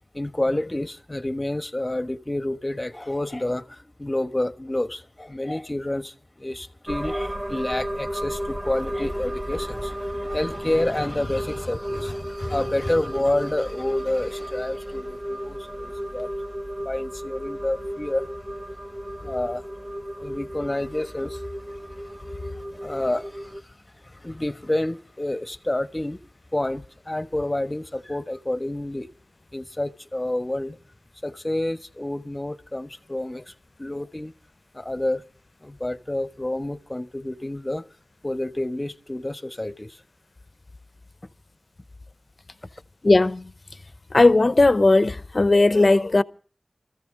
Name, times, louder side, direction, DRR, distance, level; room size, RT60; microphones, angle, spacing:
voice 1, 0.1-16.3 16.8-18.3 19.2-19.6 20.2-21.4 22.1-22.5 22.8-23.5 24.2-26.2 26.5-29.1 29.5-30.8 31.2-33.5 33.8-34.3 34.7-35.2 35.6-37.8 38.2-40.0, left 1 dB, 30° left, 1.2 m, -29 dB
sound 1, 6.9-23.6, equal, 15° right, 0.9 m, -33 dB
voice 2, 43.0-43.5 44.1-46.2, left 2 dB, 55° left, 0.8 m, -17 dB
24.5 x 14.5 x 3.9 m
wide cardioid pair, 45°, 0 cm